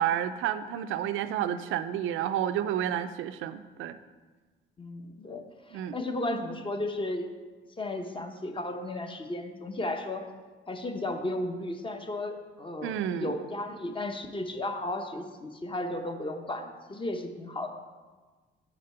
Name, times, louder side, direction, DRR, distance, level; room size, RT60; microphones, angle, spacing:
voice 1, 0.0-4.0 5.7-6.0 12.8-13.3, right 10 dB, 85° right, 11 dB, 0.4 m, -30 dB
voice 2, 4.8-7.3 7.8-10.2 10.7-17.7, left 1 dB, 25° left, 5 dB, 0.8 m, -34 dB
6.1 x 5.1 x 5.6 m, 1.3 s
cardioid pair, 90°, 20 cm